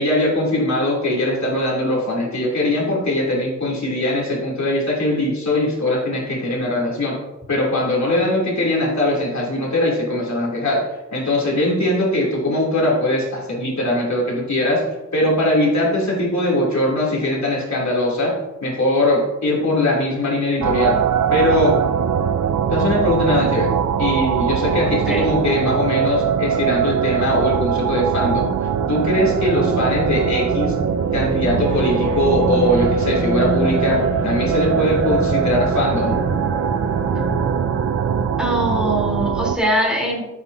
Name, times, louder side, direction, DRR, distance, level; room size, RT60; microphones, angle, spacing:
voice 1, 0.0-7.2 7.5-14.8 15.1-18.3 18.6-21.0 21.3-21.8 22.7-28.5 28.9-30.7 31.1-36.2, left 1 dB, 70° left, -4 dB, 3.1 m, -21 dB
sound 1, 20.6-39.6, right 8 dB, 80° right, 0.5 m, -21 dB
voice 2, 24.8-25.2 38.4-40.2, equal, 5° right, -4 dB, 3.5 m, -22 dB
sound 2, 28.7-39.2, right 1 dB, 50° right, 3.0 m, -27 dB
12.5 x 8.4 x 2.8 m, 1.0 s
wide cardioid pair, 115°, 29 cm